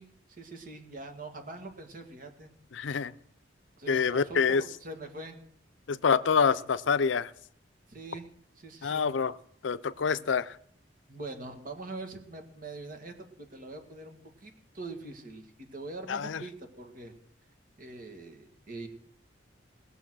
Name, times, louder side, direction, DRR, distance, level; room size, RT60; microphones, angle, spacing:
voice 1, 0.0-2.5 3.8-5.4 7.9-8.3 8.6-9.1 10.2-10.3 11.1-15.4 15.7-17.1 17.8-18.9, right 2 dB, 50° right, 5 dB, 2.0 m, -43 dB
voice 2, 2.7-3.1 3.9-4.6 5.9-7.3 8.8-9.4 9.6-10.6 16.1-16.5, left 6 dB, 85° left, 17 dB, 0.5 m, -26 dB
19.5 x 6.8 x 6.3 m, 0.67 s
head